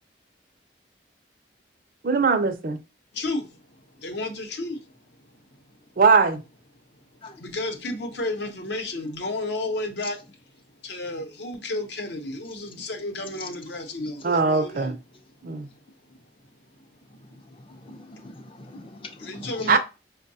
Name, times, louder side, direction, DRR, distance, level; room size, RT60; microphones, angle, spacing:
voice 1, 2.0-2.8 6.0-6.4 14.2-14.9 15.4-15.7 19.7-19.8, right 4 dB, 50° right, 0.5 m, -20 dB
voice 2, 3.1-3.5 4.0-4.8 7.4-10.2 10.8-14.9 19.2-19.8, left 2 dB, 70° left, 0.8 m, -32 dB
voice 3, 17.9-19.7, left 2 dB, 30° left, 0.5 m, -42 dB
5.3 x 2.2 x 2.7 m
head